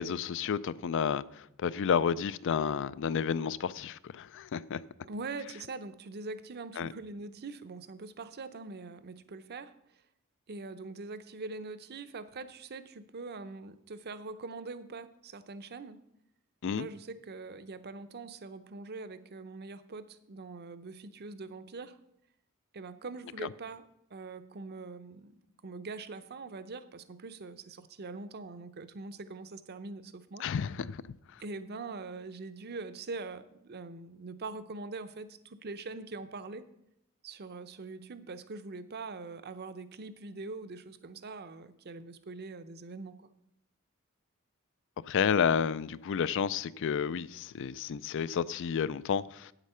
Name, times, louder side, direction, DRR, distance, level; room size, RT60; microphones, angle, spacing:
voice 1, 0.0-4.8 6.8-6.9 16.6-16.9 30.4-31.0 45.1-49.5, left 7 dB, 60° left, 0.4 m, -31 dB
voice 2, 5.0-9.7 10.5-16.0 16.6-22.0 22.7-23.8 24.1-25.3 25.6-30.4 31.4-36.6 37.2-43.3, right 3 dB, 50° right, 0.6 m, -43 dB
8.5 x 8.2 x 5.5 m
head